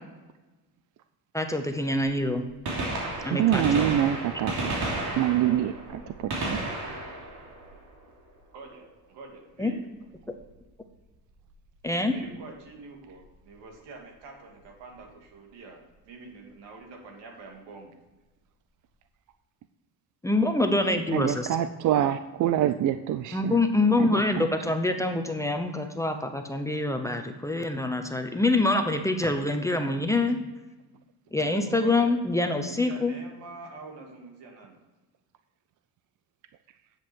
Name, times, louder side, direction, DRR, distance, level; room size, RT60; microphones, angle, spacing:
voice 1, 1.3-2.4 3.2-3.8 9.6-9.7 11.8-12.1 20.2-21.5 23.3-30.4 31.3-33.1, left 2 dB, 5° left, 5 dB, 0.7 m, -25 dB
Gunshot gunfire, 2.5-8.4 10.3-10.4 11.5-11.6 13.1-13.2 14.6-14.7 14.9-15.0, right 2 dB, 65° right, 3.1 m, -33 dB
voice 2, 3.3-4.8 5.2-6.6 21.1-23.6 24.0-24.5, right 11 dB, 50° right, 11 dB, 0.5 m, -26 dB
voice 3, 8.5-8.9 9.1-9.8 12.1-17.9 31.3-34.8, right 3 dB, 80° right, 2 dB, 2.6 m, -46 dB
10.0 x 7.8 x 4.6 m, 1.1 s
cardioid pair, 130°, 41 cm